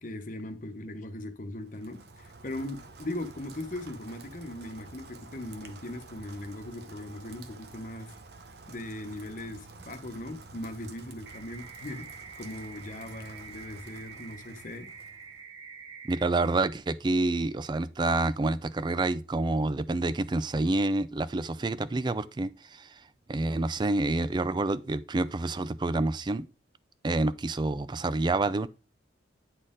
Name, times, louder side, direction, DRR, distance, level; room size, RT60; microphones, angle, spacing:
voice 1, 0.0-8.1 8.7-12.0 12.4-14.9, left 1 dB, 45° left, 1.0 m, -39 dB
Rain, 1.6-15.4, right 3 dB, 60° right, 0.8 m, -50 dB
sound 1, 11.3-16.3, right 5 dB, 90° right, 1.0 m, -47 dB
voice 2, 16.0-22.9 23.3-26.5 27.0-28.7, right 2 dB, 25° right, 0.4 m, -28 dB
9.6 x 4.3 x 3.7 m
head